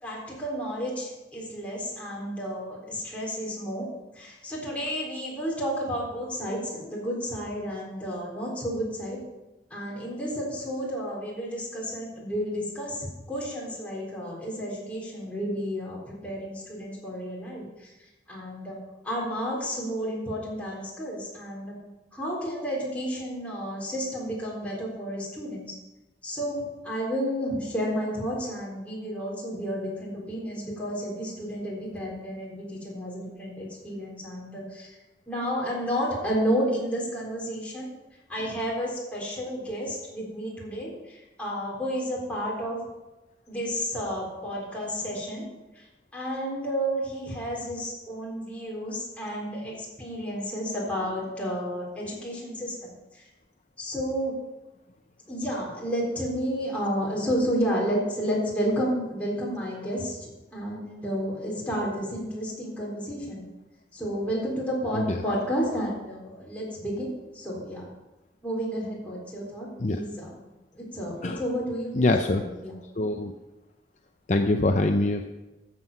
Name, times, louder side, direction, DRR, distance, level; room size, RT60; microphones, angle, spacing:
voice 1, 0.0-3.9 4.1-9.2 9.7-17.9 18.3-18.8 19.0-21.8 22.1-25.8 26.2-35.0 35.3-37.9 38.3-42.8 43.5-45.4 45.7-45.9 46.1-53.3 53.8-54.3 55.3-63.5 63.9-67.9 68.4-72.8, equal, 10° left, -5 dB, 3.9 m, -31 dB
voice 2, 72.0-72.4 72.9-73.3 74.3-75.3, left 2 dB, 40° left, 5 dB, 0.6 m, -24 dB
13.0 x 7.9 x 5.6 m, 1.1 s
head